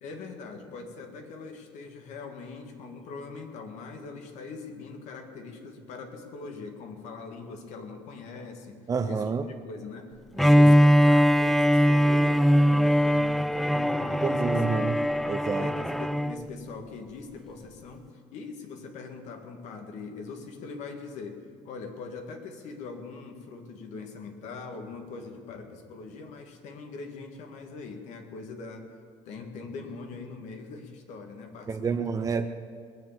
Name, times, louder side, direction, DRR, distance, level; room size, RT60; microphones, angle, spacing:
voice 1, 0.0-8.8 9.1-15.0 15.6-21.4 21.6-29.0 29.3-32.3, left 4 dB, 70° left, 4 dB, 2.1 m, -42 dB
voice 2, 8.9-9.5 10.7-10.8 14.2-15.0 15.3-15.7 31.7-32.5, right 5 dB, 30° right, 7 dB, 0.7 m, -28 dB
Bowed string instrument, 10.4-16.4, equal, ahead, 0.3 m, -21 dB
20.5 x 7.5 x 7.5 m, 2.1 s
supercardioid pair, 95°, 12 cm